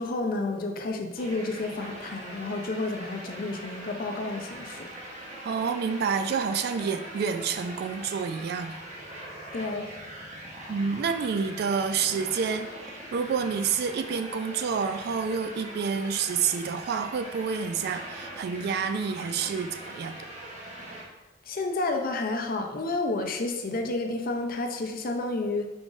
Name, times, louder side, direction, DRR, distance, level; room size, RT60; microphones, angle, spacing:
voice 1, 0.0-4.9 9.5-10.0 21.4-25.7, left 2 dB, 50° left, 3 dB, 0.5 m, -30 dB
sound 1, 1.2-21.1, right 1 dB, 40° right, 0.9 m, -42 dB
voice 2, 5.4-8.8 10.7-20.3, right 6 dB, 55° right, 8 dB, 0.3 m, -29 dB
4.8 x 3.8 x 2.5 m, 1.1 s
head